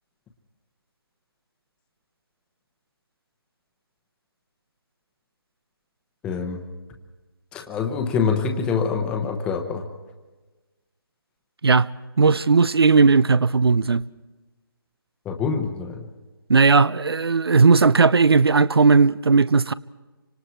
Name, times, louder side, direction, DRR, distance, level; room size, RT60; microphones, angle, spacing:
voice 1, 6.2-6.6 7.5-9.9 15.2-16.0, left 5 dB, 5° left, 0.9 m, -25 dB
voice 2, 11.6-14.0 16.5-19.7, right 4 dB, 85° right, 0.6 m, -17 dB
28.0 x 25.5 x 4.5 m
figure-of-eight pair, 165°, 13 cm